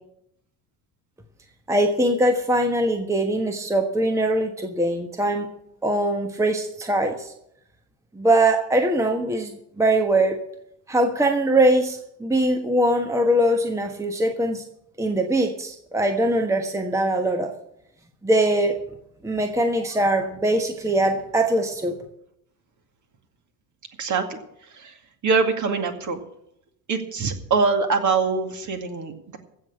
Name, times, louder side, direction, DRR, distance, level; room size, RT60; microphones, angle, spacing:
voice 1, 1.7-5.5 5.8-7.3 8.1-10.4 10.9-14.6 15.0-17.5 18.2-18.8 19.2-22.0, right 1 dB, 5° right, 5 dB, 1.3 m, -22 dB
voice 2, 24.0-24.4 24.7-24.9 25.2-26.2 26.9-29.4, right 4 dB, 35° right, 6 dB, 2.2 m, -23 dB
15.5 x 6.4 x 8.7 m, 0.76 s
figure-of-eight pair, 65°, 49 cm